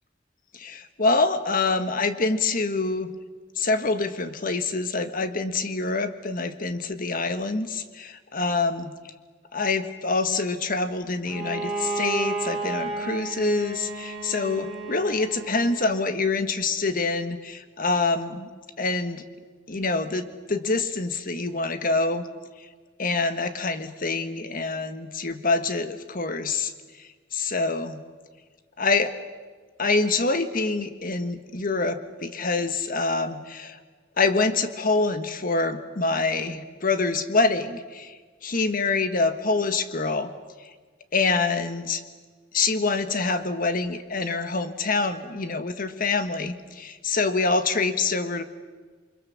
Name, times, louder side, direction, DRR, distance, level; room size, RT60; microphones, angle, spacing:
voice 1, 0.5-3.1 3.6-8.9 9.5-18.5 18.8-19.2 19.7-22.2 23.0-26.7 27.3-28.0 28.8-29.1 29.8-33.8 34.2-38.1 38.4-40.3 41.1-42.0 42.5-48.4, left 3 dB, 45° left, 9 dB, 1.5 m, -26 dB
Bowed string instrument, 11.3-16.0, right 3 dB, 5° right, 4.6 m, -32 dB
29.0 x 24.5 x 7.3 m, 1.4 s
head